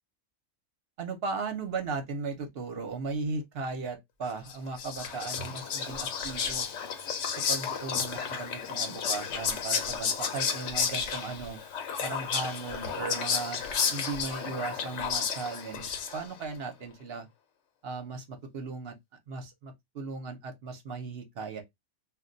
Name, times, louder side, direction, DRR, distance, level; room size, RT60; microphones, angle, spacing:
voice 1, 1.0-6.7 7.5-11.6 12.0-13.6 13.9-17.3 17.8-18.9 19.3-21.6, right 4 dB, 55° right, 0.8 m, -37 dB
Whispering, 4.5-16.4, left 6 dB, 65° left, 0.9 m, -32 dB
2.3 x 2.2 x 3.7 m
omnidirectional pair, 1.4 m